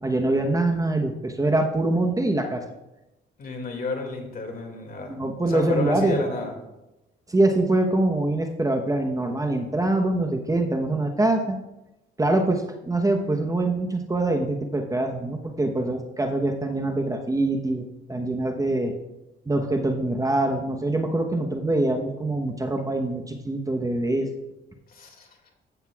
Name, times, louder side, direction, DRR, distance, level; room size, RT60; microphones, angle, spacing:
voice 1, 0.0-2.6 5.1-6.2 7.3-11.6 12.2-18.9 19.5-24.3, right 2 dB, 15° right, 3 dB, 1.0 m, -24 dB
voice 2, 3.4-5.1 5.5-6.5 24.9-25.3, left 3 dB, 50° left, 2 dB, 2.2 m, -31 dB
14.5 x 7.9 x 2.4 m, 0.95 s
cardioid pair, 90°, 20 cm